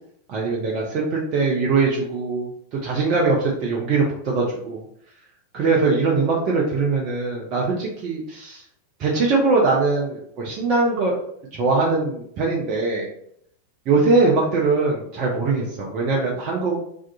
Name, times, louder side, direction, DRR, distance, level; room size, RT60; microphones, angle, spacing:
voice 1, 0.3-4.8 5.5-8.6 9.0-11.2 11.5-13.1 13.9-16.8, right 3 dB, 40° right, -2 dB, 0.5 m, -21 dB
2.6 x 2.3 x 2.2 m, 0.68 s
figure-of-eight pair, 90°, 0 cm